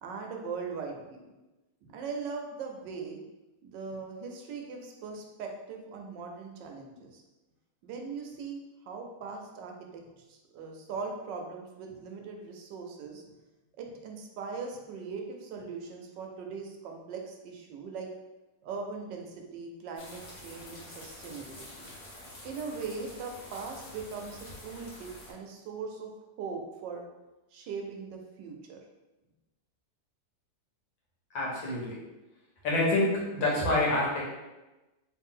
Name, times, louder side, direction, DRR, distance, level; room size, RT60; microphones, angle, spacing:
voice 1, 0.0-1.3 1.8-3.2 3.6-7.2 7.8-8.6 8.8-13.2 13.8-18.1 18.6-21.9 22.4-26.1 26.4-27.0 27.5-28.8, right 5 dB, 80° right, 2 dB, 1.2 m, -40 dB
sound 1, 20.0-25.3, left 1 dB, 50° left, 1.0 m, -47 dB
voice 2, 31.3-32.0 32.6-34.2, left 2 dB, 80° left, -4 dB, 1.8 m, -27 dB
3.3 x 3.1 x 3.6 m, 1.1 s
omnidirectional pair, 2.0 m